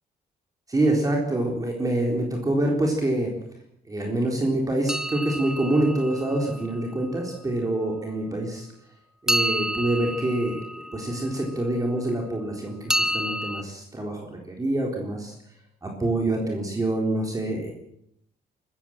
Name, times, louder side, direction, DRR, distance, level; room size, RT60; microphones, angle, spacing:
voice 1, 0.7-3.3 3.9-8.7 9.2-15.3 15.8-17.7, right 1 dB, 20° right, 1 dB, 4.0 m, -26 dB
sound 1, 4.9-6.9 9.3-11.6 12.9-13.6, right 1 dB, 5° right, 1.0 m, -29 dB
25.0 x 14.5 x 7.5 m, 0.75 s
cardioid pair, 120°, 17 cm